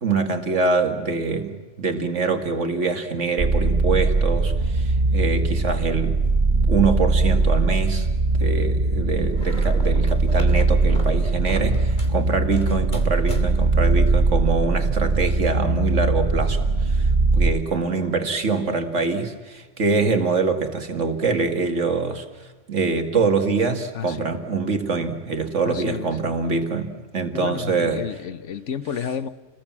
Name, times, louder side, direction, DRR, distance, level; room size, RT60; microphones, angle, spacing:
voice 1, 0.0-6.2 6.5-8.1 8.4-22.2 22.7-28.0, right 4 dB, 75° right, 5 dB, 2.5 m, -24 dB
sound 1, 3.4-17.5, right 3 dB, 40° right, 1.4 m, -20 dB
sound 2, 9.3-12.2 12.5-13.8, equal, 40° left, 3.0 m, -38 dB
voice 2, 23.9-24.4 25.6-26.1 27.3-29.3, left 7 dB, 75° left, 14 dB, 1.3 m, -31 dB
28.5 x 20.5 x 7.4 m, 1.4 s
omnidirectional pair, 1.3 m